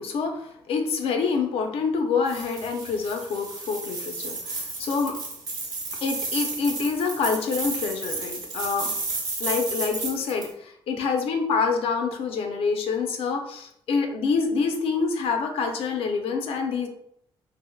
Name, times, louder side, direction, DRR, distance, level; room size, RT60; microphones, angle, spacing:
voice 1, 0.0-5.2 6.0-9.0 9.4-16.9, left 5 dB, 75° left, 4 dB, 0.5 m, -26 dB
sound 1, 2.3-10.5, right 3 dB, 40° right, 0.9 m, -32 dB
3.4 x 2.5 x 2.2 m, 0.71 s
cardioid pair, 145°, 10 cm